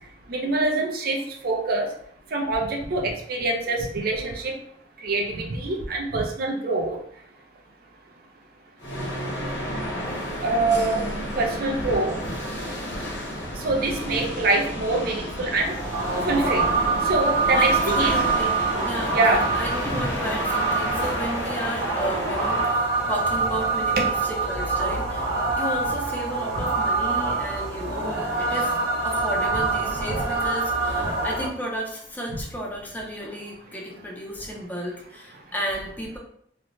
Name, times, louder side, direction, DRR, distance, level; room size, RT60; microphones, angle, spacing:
voice 1, 0.3-1.2 1.4-1.9 2.3-4.5 5.0-7.0 10.4-12.2 13.6-15.7 16.2-16.7 17.1-18.1 19.1-19.5 20.0-20.1, right 2 dB, 55° right, 2 dB, 0.5 m, -24 dB
sound 1, 8.8-23.9, equal, 70° left, 0.9 m, -32 dB
sound 2, 15.6-31.5, right 3 dB, 75° right, 1.0 m, -25 dB
voice 2, 17.5-18.5 18.8-36.2, equal, 10° left, -2 dB, 0.6 m, -33 dB
2.5 x 2.1 x 3.0 m, 0.67 s
head